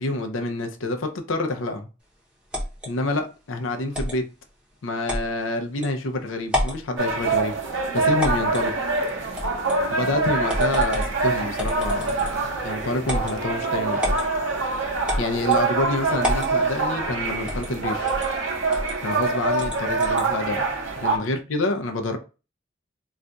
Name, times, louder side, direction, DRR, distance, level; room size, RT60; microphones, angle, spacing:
voice 1, 0.0-1.9 2.9-4.2 4.8-7.5 8.1-8.7 9.9-14.2 15.2-18.2 19.0-20.6 21.0-22.2, left 2 dB, 85° left, 0.5 m, -27 dB
sound 1, 2.5-2.9 3.9-4.2 5.1-5.3 5.8-5.9 6.4-6.8 8.2-8.7 9.4-9.8 10.5-11.1 11.6-12.5 13.0-13.4 14.0-14.3 15.1-15.6 16.2-16.5 17.5-17.7 18.1-18.3 18.7-18.9 19.6-20.3, left 1 dB, 5° right, 0.6 m, -28 dB
sound 2, 7.0-21.2, right 3 dB, 80° right, 0.7 m, -25 dB
2.4 x 2.2 x 3.8 m
head